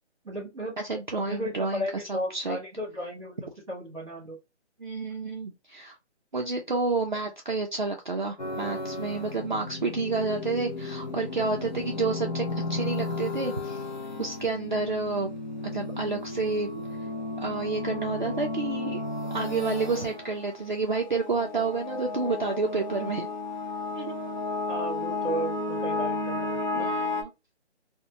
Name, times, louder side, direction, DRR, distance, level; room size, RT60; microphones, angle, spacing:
voice 1, 0.2-0.8 1.2-4.4 24.7-26.9, right 1 dB, 5° right, 1.0 m, -34 dB
voice 2, 0.8-2.6 4.8-5.9 6.3-13.8 14.2-15.3 15.6-16.7 17.4-19.0 19.3-23.3 24.0-24.2 26.7-27.3, right 3 dB, 45° right, 0.4 m, -30 dB
sound 1, 8.4-27.2, left 3 dB, 40° left, 0.5 m, -33 dB
2.5 x 2.1 x 2.8 m
hypercardioid pair, 170°, 35 cm